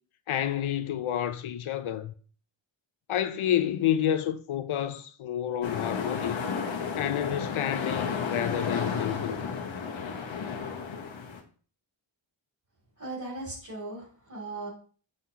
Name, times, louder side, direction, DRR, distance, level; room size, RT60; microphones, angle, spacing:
voice 1, 0.3-2.1 3.1-6.4 7.0-9.4, left 10 dB, 85° left, 0.6 m, -29 dB
sound 1, 5.6-11.4, left 5 dB, 70° left, 1.0 m, -32 dB
voice 2, 13.0-14.7, right 2 dB, 40° right, 2.7 m, -38 dB
6.4 x 5.6 x 2.8 m
wide cardioid pair, 135°, 47 cm